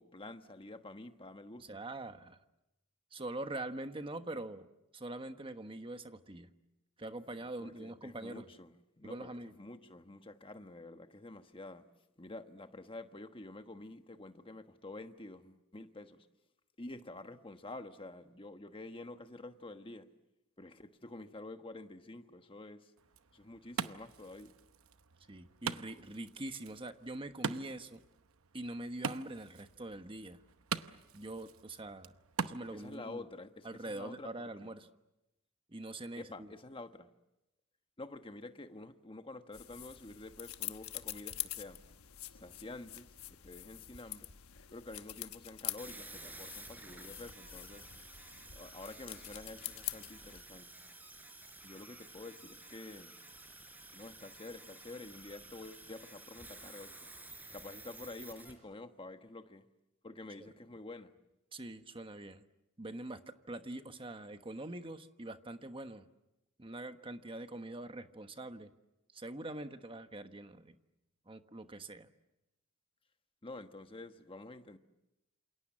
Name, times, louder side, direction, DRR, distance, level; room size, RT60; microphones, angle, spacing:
voice 1, 0.0-1.8 7.4-11.9 12.2-16.3 16.8-20.1 20.6-22.9 23.3-24.6 32.7-34.7 36.2-37.1 38.0-41.8 42.3-44.3 44.7-47.9 48.5-50.7 51.6-53.2 53.9-57.1 57.5-59.6 60.0-61.1 73.4-74.8, left 2 dB, 25° left, 1.3 m, -49 dB
voice 2, 1.6-2.4 3.1-4.7 4.9-6.5 7.0-8.5 9.0-9.5 25.3-28.0 28.5-30.4 31.1-32.1 32.4-33.3 33.6-34.9 35.7-36.5 61.5-62.4 62.8-66.1 66.6-68.7 69.1-70.8 71.3-72.1, right 2 dB, 25° right, 1.2 m, -44 dB
Wood, 23.0-33.0, right 5 dB, 70° right, 0.9 m, -43 dB
sound 1, 39.5-50.4, left 14 dB, 80° left, 1.1 m, -45 dB
sound 2, 45.8-58.5, right 2 dB, 10° right, 4.2 m, -52 dB
28.0 x 28.0 x 7.5 m
head